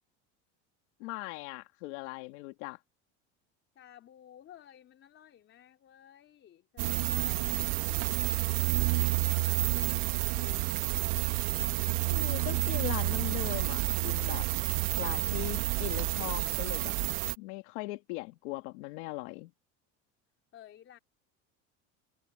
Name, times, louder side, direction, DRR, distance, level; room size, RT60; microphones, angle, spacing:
voice 1, 1.0-2.8 12.1-14.5 15.0-16.9 17.4-19.5, left 21 dB, 85° left, 2.2 m, -39 dB
voice 2, 3.8-8.0 8.8-11.2 20.5-21.0, left 11 dB, 35° left, 3.7 m, -54 dB
sound 1, 6.8-17.3, right 21 dB, 70° right, 1.3 m, -29 dB
cardioid pair, 145°, 34 cm